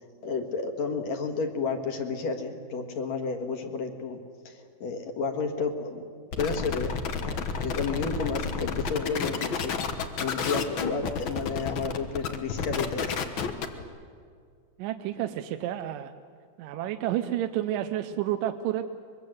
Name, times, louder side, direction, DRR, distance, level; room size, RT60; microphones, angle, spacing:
voice 1, 0.2-4.2 4.5-6.1 6.4-13.2, left 4 dB, 55° left, 5 dB, 2.5 m, -31 dB
sound 1, 6.3-13.8, left 5 dB, 75° left, 1.1 m, -31 dB
voice 2, 14.8-16.1 16.6-18.8, right 12 dB, 75° right, 8 dB, 2.2 m, -30 dB
24.0 x 22.0 x 7.8 m, 2.1 s
omnidirectional pair, 4.2 m